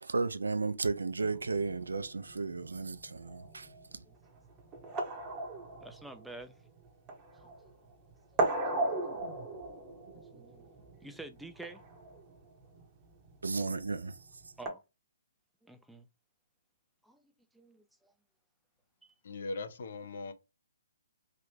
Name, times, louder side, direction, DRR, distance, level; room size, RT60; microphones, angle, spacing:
voice 1, 0.0-3.7 3.9-4.0 13.4-14.2, right 4 dB, 85° right, 0.4 m, -34 dB
sound 1, 1.2-14.7, right 2 dB, 20° right, 0.7 m, -38 dB
voice 2, 5.8-6.6 7.4-7.5 8.3-8.5 10.2-11.8 14.6-14.8 15.6-16.1 17.0-18.1 19.0-19.1, right 2 dB, ahead, 0.4 m, -49 dB
voice 3, 19.2-20.3, left 3 dB, 60° left, 0.6 m, -39 dB
3.3 x 2.5 x 3.1 m
hypercardioid pair, 140°, 0 cm